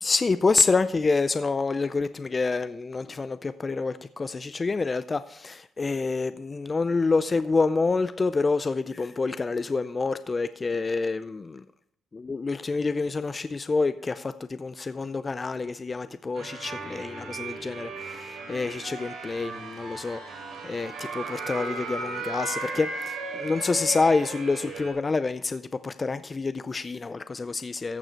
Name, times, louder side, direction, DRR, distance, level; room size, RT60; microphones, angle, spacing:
voice 1, 0.0-11.6 12.1-28.0, left 4 dB, 30° left, 12 dB, 0.4 m, -27 dB
sound 1, 16.3-24.9, right 3 dB, 90° right, 3.6 m, -36 dB
14.5 x 6.5 x 4.4 m, 0.68 s
cardioid pair, 90°, 0 cm